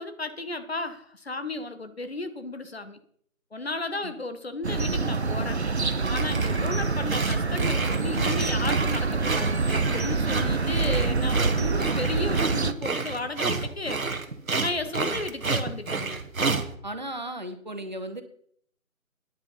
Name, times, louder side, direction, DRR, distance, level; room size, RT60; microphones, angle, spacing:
voice 1, 0.0-3.0 3.5-5.6 6.1-14.0 14.6-16.2, left 2 dB, 45° left, 10 dB, 1.1 m, -34 dB
sound 1, 4.6-12.7, right 4 dB, 50° right, 0.7 m, -26 dB
sound 2, 5.9-6.6 7.1-16.7, right 4 dB, 75° right, 1.5 m, -30 dB
voice 2, 16.8-18.2, right 1 dB, 30° right, 8 dB, 1.0 m, -35 dB
9.8 x 8.2 x 5.6 m, 0.63 s
figure-of-eight pair, 175°, 42 cm